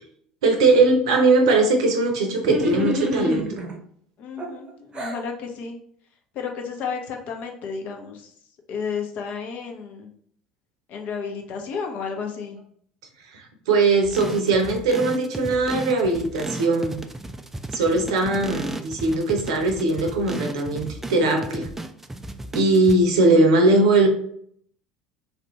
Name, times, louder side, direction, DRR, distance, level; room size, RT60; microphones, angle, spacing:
voice 1, 0.4-3.5 13.3-17.0 17.7-21.7 22.5-24.1, right 2 dB, 70° right, 4 dB, 0.7 m, -20 dB
sound 1, 2.4-3.8 4.4-5.2, equal, 30° right, 0.8 m, -27 dB
voice 2, 4.2-5.8 6.3-8.3 8.7-10.1 10.9-12.6, left 5 dB, 50° left, 2 dB, 0.8 m, -32 dB
sound 2, 14.0-23.0, right 2 dB, 10° right, 0.3 m, -35 dB
3.3 x 2.5 x 3.0 m, 0.63 s
figure-of-eight pair, 65°, 3 cm